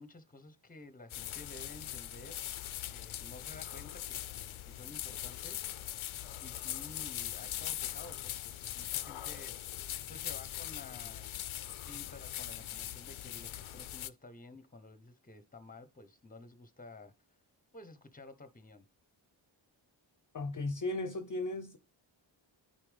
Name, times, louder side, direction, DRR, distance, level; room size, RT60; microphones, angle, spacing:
voice 1, 0.0-2.4 2.9-5.6 6.4-9.5 10.1-11.4 11.8-17.1 17.7-18.8, left 2 dB, 15° left, 1.0 m, -52 dB
sound 1, 1.1-14.1, left 12 dB, 80° left, 0.5 m, -41 dB
voice 2, 20.3-21.8, left 2 dB, 40° left, 0.7 m, -36 dB
9.8 x 4.3 x 3.4 m
wide cardioid pair, 70°, 48 cm